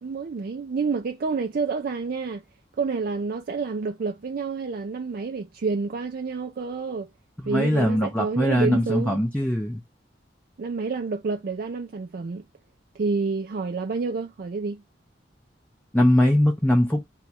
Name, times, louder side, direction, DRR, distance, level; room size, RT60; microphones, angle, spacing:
voice 1, 0.0-2.4 2.8-7.1 7.5-9.2 10.6-12.4 13.0-14.8, right 4 dB, 55° right, 0.4 m, -28 dB
voice 2, 7.4-9.8 15.9-17.0, left 1 dB, 5° left, 0.5 m, -21 dB
3.1 x 2.3 x 4.2 m
head